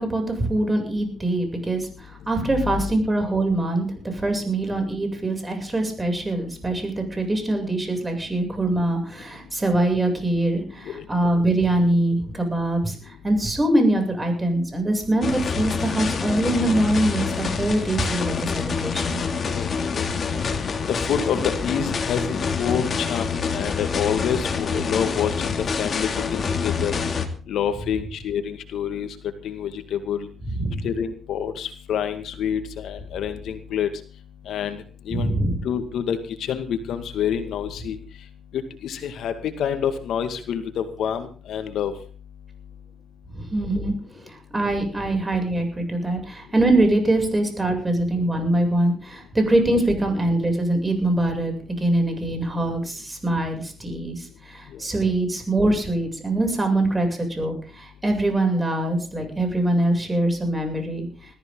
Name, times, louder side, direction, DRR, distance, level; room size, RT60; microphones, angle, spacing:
voice 1, 0.0-3.9 4.1-19.2 30.4-30.9 35.1-35.6 43.4-43.9 44.3-61.1, right 1 dB, 20° right, 4 dB, 7.5 m, -23 dB
voice 2, 2.4-2.8 10.9-11.0 19.4-19.7 19.9-20.1 20.9-23.2 23.5-26.9 27.5-29.1 29.4-30.3 30.8-33.9 34.5-34.8 35.1-35.3 35.6-36.2 36.5-38.0 38.5-41.9, left 8 dB, 75° left, 8 dB, 2.1 m, -27 dB
sound 1, 15.2-27.3, left 5 dB, 45° left, 2.9 m, -26 dB
21.0 x 14.5 x 4.0 m, 0.39 s
cardioid pair, 90°, 0 cm